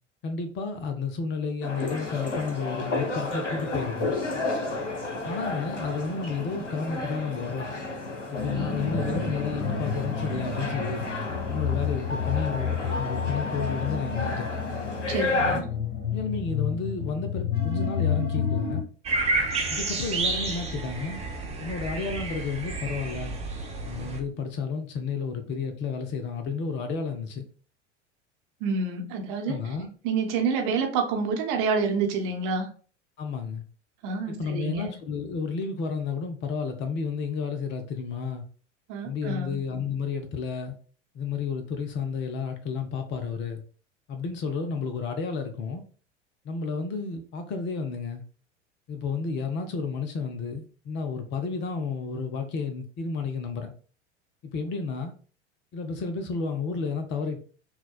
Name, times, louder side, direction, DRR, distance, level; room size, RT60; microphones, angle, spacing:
voice 1, 0.2-4.1 5.2-7.7 8.3-11.1 11.5-14.5 15.5-15.6 16.1-18.8 19.7-21.2 21.6-23.4 23.9-27.5 29.5-29.9 33.2-33.6 34.3-38.4 39.0-40.8 41.1-43.6 44.1-45.8 46.4-48.2 48.9-53.7 54.5-55.1 55.7-57.4, left 5 dB, 30° left, 0.6 m, -31 dB
sound 1, 1.6-15.6, left 2 dB, 75° left, 1.0 m, -32 dB
sound 2, 8.3-18.8, left 7 dB, 45° left, 1.2 m, -30 dB
voice 2, 15.0-15.6 28.6-29.6 30.0-32.7 34.0-34.9 38.9-39.6, right 4 dB, 45° right, 0.9 m, -28 dB
sound 3, 19.1-24.2, right 3 dB, 15° right, 0.8 m, -30 dB
5.6 x 2.2 x 2.4 m
figure-of-eight pair, 80°, 36 cm